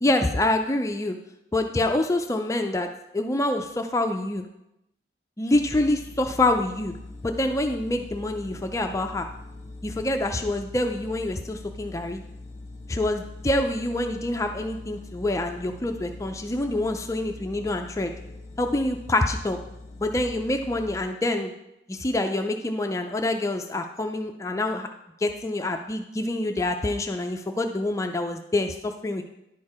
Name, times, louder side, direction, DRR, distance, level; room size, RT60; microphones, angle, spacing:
voice 1, 0.0-1.2 1.5-2.9 3.1-4.4 5.4-6.9 7.2-9.3 9.8-12.2 12.9-18.1 18.6-19.6 20.0-21.5 21.9-24.9 25.2-29.2, left 1 dB, 20° left, 5 dB, 0.4 m, -26 dB
sound 1, 5.5-21.0, left 2 dB, 40° left, 1.0 m, -42 dB
11.0 x 4.6 x 4.8 m, 0.86 s
head